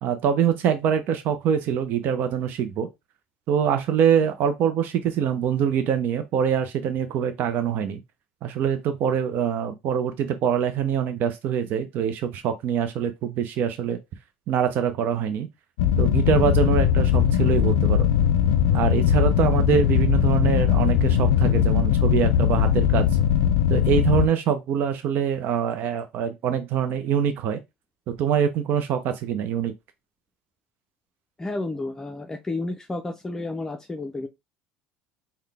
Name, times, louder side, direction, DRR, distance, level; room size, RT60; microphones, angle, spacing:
voice 1, 0.0-2.9 3.5-8.0 8.4-14.0 14.5-15.5 16.0-18.1 18.7-23.1 23.7-27.6 28.1-29.7, right 8 dB, 55° right, 0.6 m, -24 dB
sound 1, 15.8-24.3, left 9 dB, 85° left, 0.4 m, -20 dB
voice 2, 31.4-34.3, left 2 dB, 15° left, 0.5 m, -31 dB
3.8 x 2.2 x 3.3 m
supercardioid pair, 90°, 4 cm